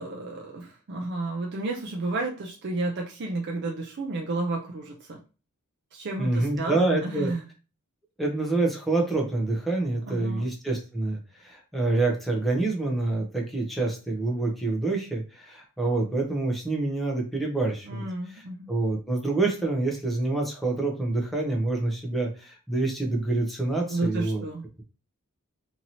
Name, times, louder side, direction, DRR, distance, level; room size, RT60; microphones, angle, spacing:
voice 1, 0.0-5.2 5.9-7.4 10.1-10.5 17.9-18.7 23.9-24.7, right 2 dB, 50° right, 0 dB, 0.4 m, -32 dB
voice 2, 6.2-7.3 8.2-18.0 18.7-24.4, right 2 dB, ahead, 0 dB, 0.6 m, -27 dB
2.8 x 2.7 x 2.8 m, 0.34 s
head